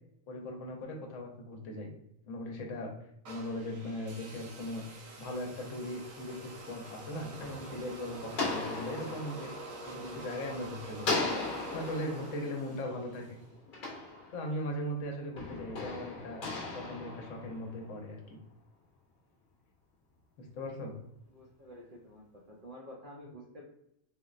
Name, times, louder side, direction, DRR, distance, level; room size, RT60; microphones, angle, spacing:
voice 1, 0.3-1.9 2.2-2.9 3.3-4.8 5.2-9.6 9.8-11.1 11.7-13.4 14.3-16.5 16.7-18.4 20.4-20.9, left 1 dB, 70° left, 1 dB, 1.0 m, -39 dB
sound 1, 3.2-13.4, right 2 dB, 85° right, 1.0 m, -47 dB
sound 2, 6.8-10.5 11.0-14.8 15.4-18.0, left 3 dB, 45° left, 0.8 m, -38 dB
voice 2, 21.3-23.7, equal, 60° right, -3 dB, 0.6 m, -50 dB
3.8 x 2.0 x 2.3 m, 0.76 s
omnidirectional pair, 1.4 m